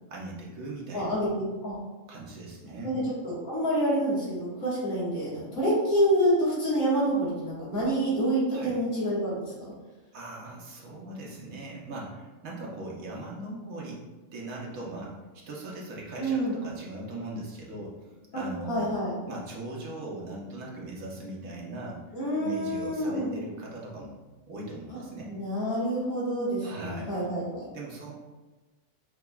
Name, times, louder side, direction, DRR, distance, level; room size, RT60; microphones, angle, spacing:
voice 1, 0.1-1.1 2.1-3.0 8.5-8.7 10.1-14.0 14.3-15.1 15.5-17.9 18.3-19.0 19.3-22.0 22.4-24.2 24.5-25.3 26.6-27.3 27.7-28.1, right 2 dB, 85° right, -3 dB, 1.3 m, -39 dB
voice 2, 0.9-1.7 2.8-9.7 16.2-16.5 18.3-18.4 18.7-19.1 22.1-23.3 25.3-27.7, right 1 dB, 90° left, -9 dB, 1.9 m, -27 dB
6.2 x 2.9 x 2.3 m, 1.2 s
omnidirectional pair, 1.4 m